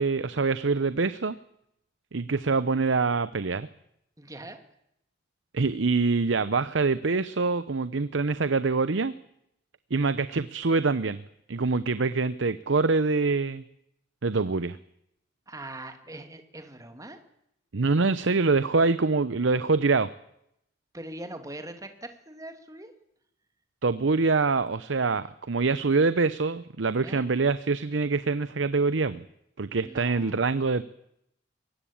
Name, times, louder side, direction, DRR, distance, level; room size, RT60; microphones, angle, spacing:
voice 1, 0.0-1.4 2.1-3.7 5.5-9.1 9.9-11.2 11.5-13.6 14.2-14.8 17.7-20.1 23.8-29.2 29.6-30.8, right 4 dB, 85° right, 14 dB, 0.8 m, -25 dB
voice 2, 4.2-4.6 15.5-17.2 20.9-22.9 27.0-27.3 29.8-30.6, right 1 dB, 20° right, 7 dB, 2.3 m, -42 dB
22.5 x 18.5 x 8.7 m, 0.78 s
head